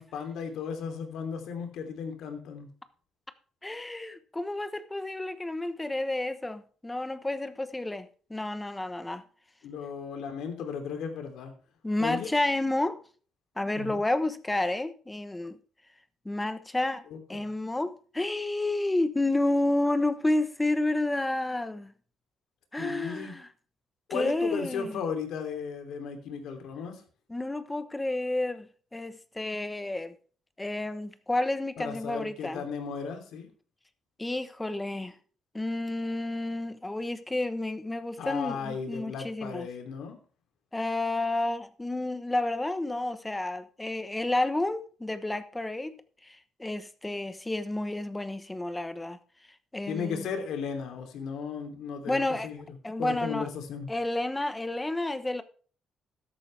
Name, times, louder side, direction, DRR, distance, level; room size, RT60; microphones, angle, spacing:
voice 1, 0.0-2.7 9.6-11.5 12.0-12.3 13.8-14.0 17.1-17.5 22.8-23.4 24.1-27.0 31.8-33.5 38.2-40.2 49.9-52.6 53.0-53.9, left 6 dB, 80° left, 3.1 m, -35 dB
voice 2, 3.6-9.2 11.8-13.0 13.6-15.6 16.2-17.0 17.3-21.9 22.7-23.5 24.1-25.0 27.3-30.1 30.6-32.6 34.2-35.1 35.5-39.7 40.7-46.0 46.2-49.2 49.7-50.3 52.1-52.5 52.8-53.5 53.9-55.4, left 2 dB, 10° left, 1.1 m, -30 dB
13.0 x 11.0 x 3.5 m
cardioid pair, 110°, 0 cm